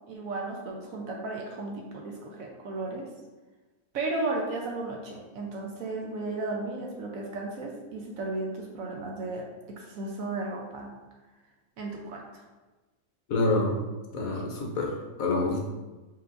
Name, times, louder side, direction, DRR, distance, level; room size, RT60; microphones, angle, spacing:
voice 1, 0.1-3.1 3.9-10.9 11.8-12.4, right 2 dB, 65° right, 0 dB, 1.0 m, -34 dB
voice 2, 13.3-13.8 14.1-15.6, left 2 dB, 65° left, 0 dB, 1.1 m, -27 dB
4.5 x 3.9 x 2.5 m, 1.2 s
omnidirectional pair, 1.7 m